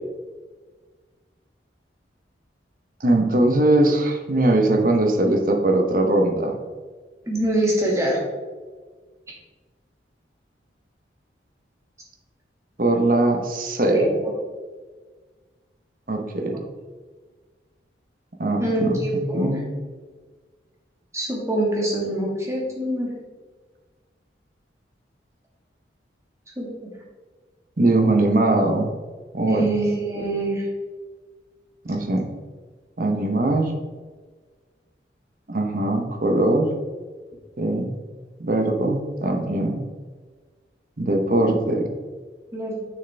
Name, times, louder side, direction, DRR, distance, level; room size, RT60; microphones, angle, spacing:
voice 1, 3.0-6.6 12.8-14.0 16.1-16.6 18.4-19.6 27.8-28.9 29.3-29.7 31.8-32.3 33.0-33.8 35.5-36.7 37.6-37.9 38.4-39.8 41.0-41.9, right 2 dB, 50° right, 3 dB, 0.9 m, -21 dB
voice 2, 7.2-8.2 13.9-14.3 18.6-19.6 21.1-23.1 26.6-26.7 29.5-30.7 42.5-42.8, right 1 dB, 15° right, -3 dB, 1.7 m, -24 dB
6.7 x 6.4 x 3.4 m, 1.4 s
head